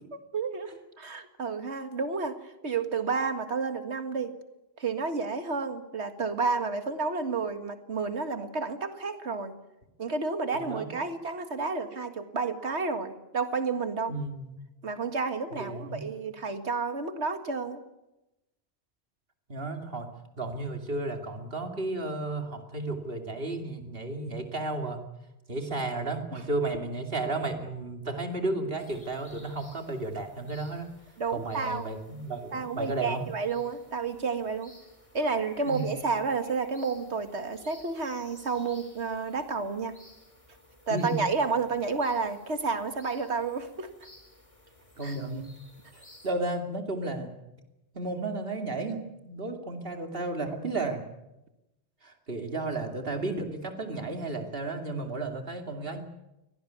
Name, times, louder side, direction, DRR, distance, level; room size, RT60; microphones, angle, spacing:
voice 1, 0.3-2.4 2.6-4.3 4.8-9.6 10.0-14.1 14.8-17.8 31.2-31.9 32.5-34.7 35.1-39.9 40.9-43.9 45.0-45.2, right 4 dB, 90° right, 8 dB, 2.2 m, -31 dB
voice 2, 10.5-10.9 14.1-14.5 15.5-16.0 19.5-20.1 20.4-25.0 25.5-30.9 31.3-33.2 35.7-35.9 40.9-41.2 45.0-45.5 45.9-47.3 47.9-51.0 52.0-56.0, right 2 dB, 60° right, 5 dB, 3.0 m, -33 dB
sound 1, 28.8-46.3, left 1 dB, 30° left, 4.1 m, -56 dB
23.5 x 18.5 x 9.5 m, 0.96 s
omnidirectional pair, 1.1 m